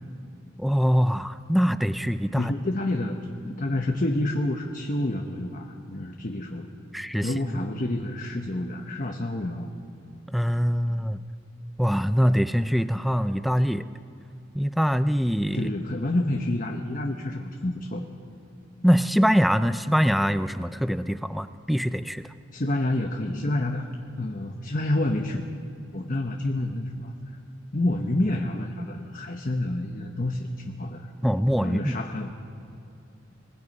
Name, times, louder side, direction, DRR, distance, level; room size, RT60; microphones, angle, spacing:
voice 1, 0.6-2.5 6.9-7.3 10.3-11.2 11.8-13.9 14.6-15.7 18.8-22.2 31.2-32.0, equal, ahead, 11 dB, 0.4 m, -23 dB
voice 2, 2.3-3.2 3.5-6.7 7.2-9.7 15.5-18.1 22.5-23.8 24.2-25.4 25.9-27.4 27.7-31.1 31.6-32.3, left 1 dB, 45° left, 3 dB, 1.1 m, -28 dB
24.0 x 21.0 x 5.4 m, 2.6 s
head